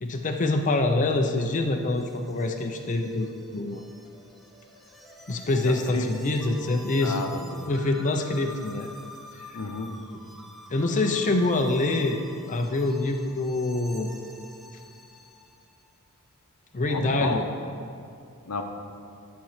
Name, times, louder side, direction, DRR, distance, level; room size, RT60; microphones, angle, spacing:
voice 1, 0.0-3.8 5.3-7.2 7.6-8.9 9.4-9.6 10.7-12.2 12.5-14.1 16.7-17.4, left 2 dB, 35° left, 3 dB, 0.6 m, -25 dB
sound 1, 1.8-15.7, left 1 dB, ahead, 0.7 m, -47 dB
voice 2, 5.6-6.1 7.0-7.7 9.5-10.0 16.9-17.4 18.5-18.6, left 3 dB, 90° left, 4 dB, 0.9 m, -31 dB
11.5 x 4.5 x 7.3 m, 2.5 s
head